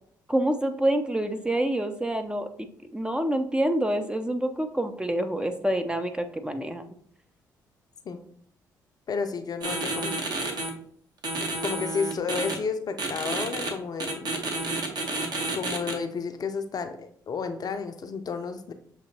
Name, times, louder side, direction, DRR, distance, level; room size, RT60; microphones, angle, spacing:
voice 1, 0.3-2.7 2.9-6.8, right 1 dB, 10° right, 7 dB, 0.5 m, -27 dB
voice 2, 9.1-10.2 11.4-14.3 15.5-18.7, left 5 dB, 40° left, 8 dB, 0.5 m, -32 dB
sound 1, 9.6-10.7 11.2-12.5 13.0-13.7 14.0-15.9, right 2 dB, 45° right, 1.0 m, -30 dB
6.7 x 2.9 x 2.7 m, 0.62 s
figure-of-eight pair, 45°, 10 cm